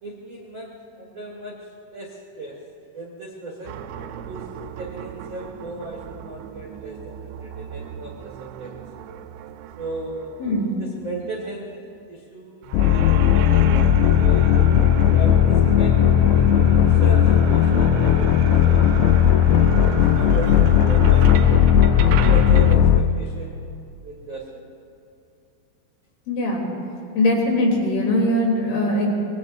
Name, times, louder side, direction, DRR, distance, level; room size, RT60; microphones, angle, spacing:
voice 1, 0.0-0.7 1.0-1.6 1.9-2.5 2.9-3.8 4.2-4.5 4.7-8.7 9.8-10.3 10.8-11.7 12.1-13.8 14.2-14.5 15.1-16.4 16.7-18.3 18.6-18.9 19.5-21.6 22.3-23.7 24.0-24.6, right 2 dB, 55° right, -3 dB, 1.3 m, -35 dB
sound 1, 3.6-11.6 12.6-22.8, right 9 dB, 85° right, 2.7 m, -36 dB
voice 2, 10.4-10.8 26.3-26.7 27.2-29.1, left 1 dB, 65° left, -2 dB, 5.5 m, -21 dB
sound 2, 12.7-23.0, left 9 dB, 85° left, 2.7 m, -16 dB
25.0 x 21.0 x 2.6 m, 2.7 s
omnidirectional pair, 5.7 m